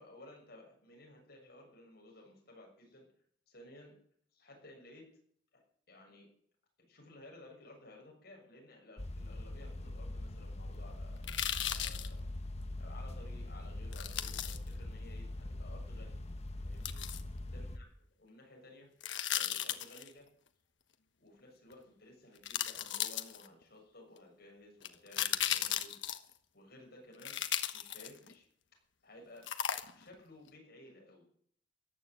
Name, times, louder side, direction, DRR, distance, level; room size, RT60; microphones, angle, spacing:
voice 1, 0.0-3.0 3.5-3.9 4.3-5.1 5.5-6.3 6.9-12.3 12.8-16.2 16.6-17.0 17.5-17.9 18.2-18.9 19.3-20.3 21.2-26.0 26.5-27.4 27.7-28.4 29.0-29.5 30.0-31.3, left 1 dB, 60° left, 0 dB, 6.8 m, -56 dB
sound 1, 9.0-17.8, left 1 dB, 35° left, 1.2 m, -42 dB
sound 2, 11.2-12.1 13.9-14.6 16.9-17.2 19.0-20.1 21.7-21.8 22.4-23.6 24.8-26.3 27.2-28.3 29.4-30.1 30.5-30.6, left 10 dB, 85° left, 1.2 m, -36 dB
14.5 x 11.5 x 7.9 m, 0.63 s
head